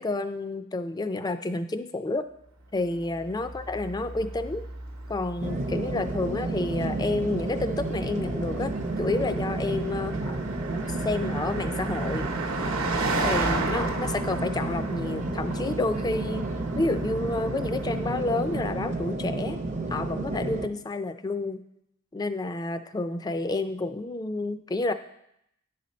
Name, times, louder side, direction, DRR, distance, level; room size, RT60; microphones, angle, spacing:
voice 1, 0.0-2.3 2.7-4.6 5.1-10.4 10.7-12.3 13.2-16.5 16.7-19.6 19.9-21.6 22.1-24.9, left 2 dB, 20° left, 11 dB, 0.3 m, -30 dB
Car passing by, 3.0-18.7, right 2 dB, 85° right, 0.9 m, -35 dB
sound 1, 5.4-20.7, right 2 dB, 35° right, 0.5 m, -31 dB
10.5 x 4.2 x 5.2 m, 0.78 s
head